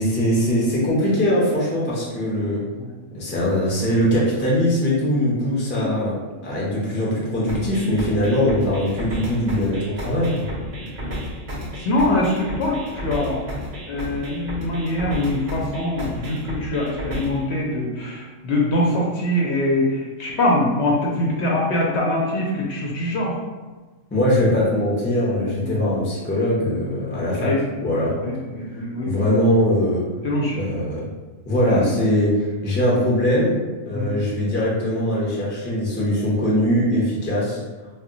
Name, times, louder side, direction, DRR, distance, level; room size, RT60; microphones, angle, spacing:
voice 1, 0.0-2.6 3.1-6.2 6.4-10.5 24.1-27.5 27.8-28.1 28.7-30.0 30.5-31.0 31.5-33.6 33.9-37.6, equal, 15° left, -6 dB, 0.4 m, -21 dB
sound 1, 7.5-17.5, equal, 55° right, 0.5 m, -32 dB
voice 2, 11.8-13.4 13.9-23.4 25.6-25.8 27.4-27.6 28.2-29.2 30.2-30.6 31.7-31.9 33.9-34.1, left 1 dB, 65° left, -3 dB, 0.8 m, -23 dB
2.1 x 2.1 x 3.7 m, 1.3 s
omnidirectional pair, 1.4 m